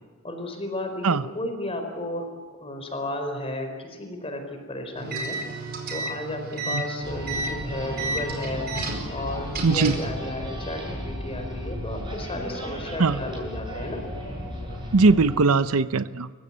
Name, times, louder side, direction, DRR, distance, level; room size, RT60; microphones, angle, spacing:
voice 1, 0.2-2.3 2.6-5.4 5.9-8.7 9.1-14.0, left 1 dB, 25° left, 5 dB, 4.5 m, -33 dB
sound 1, 5.0-10.1, right 2 dB, 45° right, 4.8 m, -32 dB
sound 2, 7.0-15.4, equal, 20° right, 7.7 m, -35 dB
voice 2, 9.6-10.0 13.0-13.2 14.9-16.3, right 4 dB, 80° right, 14 dB, 0.7 m, -20 dB
29.5 x 15.5 x 8.7 m, 1.4 s
head